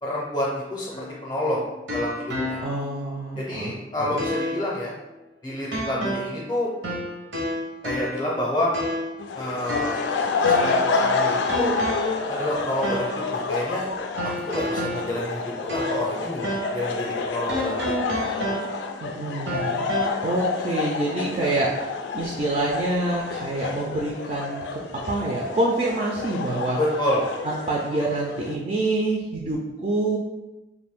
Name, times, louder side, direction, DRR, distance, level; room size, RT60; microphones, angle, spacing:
voice 1, 0.0-2.6 3.4-4.9 5.4-6.7 7.8-8.7 9.3-10.0 10.5-11.7 12.3-13.9 14.5-16.5 16.7-18.2 18.5-18.6 26.8-27.2, left 1 dB, 20° left, -5 dB, 0.5 m, -28 dB
sound 1, 0.9-3.0 3.4-3.5 4.2-4.7 5.7-6.5 6.8-8.3 8.7-9.2 9.7-11.0 11.5-12.2 12.8-13.2 14.2-16.2 16.4-16.8 17.5-19.0 19.5-20.1, equal, 90° right, 0.7 m, -30 dB
voice 2, 2.6-3.7 4.0-4.2 19.0-19.9 20.2-21.7 22.1-24.6 25.1-26.8 27.4-30.2, right 2 dB, 35° right, -2 dB, 0.3 m, -26 dB
sound 2, 9.2-28.6, left 4 dB, 85° left, 0.3 m, -28 dB
2.6 x 2.5 x 3.5 m, 1.1 s
head